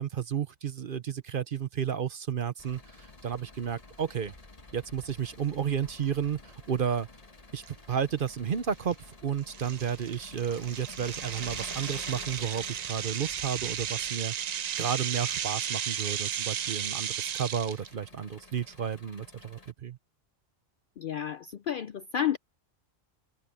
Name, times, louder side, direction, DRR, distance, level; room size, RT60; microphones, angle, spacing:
voice 1, 0.0-4.3 4.7-7.1 7.5-14.5 14.8-20.0, right 8 dB, 50° right, 0.8 m, -32 dB
Engine, 2.6-19.7, left 3 dB, 30° left, 1.6 m, -50 dB
sound 1, 7.6-7.7 8.3-8.5 8.9-9.0 9.5-17.9, right 9 dB, 80° right, 0.3 m, -34 dB
voice 2, 21.0-22.4, left 9 dB, 60° left, 0.5 m, -31 dB
omnidirectional pair, 1.3 m